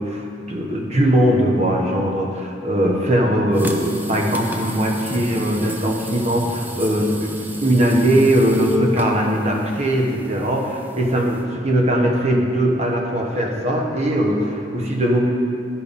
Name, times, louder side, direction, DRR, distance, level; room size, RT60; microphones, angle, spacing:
voice 1, 0.0-7.4 7.6-15.3, right 1 dB, 35° right, 1 dB, 1.0 m, -20 dB
sound 1, 3.5-11.4, right 1 dB, 10° right, 0.5 m, -33 dB
12.0 x 4.7 x 5.2 m, 2.7 s
head